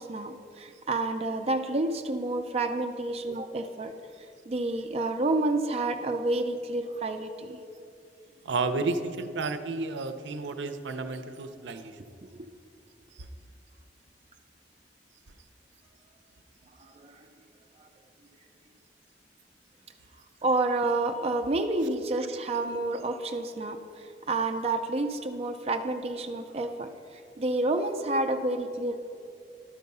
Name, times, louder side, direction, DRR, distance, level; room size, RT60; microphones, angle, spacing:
voice 1, 0.0-3.9 4.5-7.6 12.4-12.5 16.8-17.3 20.4-29.1, right 2 dB, 35° right, 6 dB, 0.5 m, -29 dB
voice 2, 8.4-12.0, right 3 dB, 80° right, 9 dB, 0.6 m, -31 dB
12.0 x 4.7 x 5.4 m, 2.5 s
head